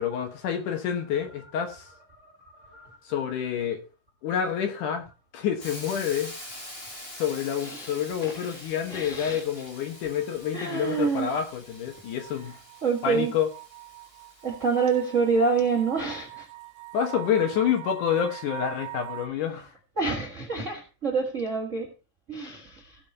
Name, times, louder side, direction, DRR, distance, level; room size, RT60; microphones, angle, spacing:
voice 1, 0.0-1.9 3.1-3.8 4.2-5.0 5.3-6.3 7.1-12.6 13.0-13.5 16.9-19.7, left 8 dB, 65° left, 2.6 m, -28 dB
voice 2, 2.5-3.0 7.6-7.9 8.2-9.4 10.5-11.3 12.8-13.3 14.4-16.5 20.0-21.9 22.3-23.0, right 5 dB, 60° right, 0.7 m, -27 dB
Hiss, 5.6-15.5, left 1 dB, 15° left, 2.7 m, -45 dB
sound 1, 9.6-19.3, right 21 dB, 85° right, 2.7 m, -43 dB
16.5 x 5.6 x 4.3 m
omnidirectional pair, 4.4 m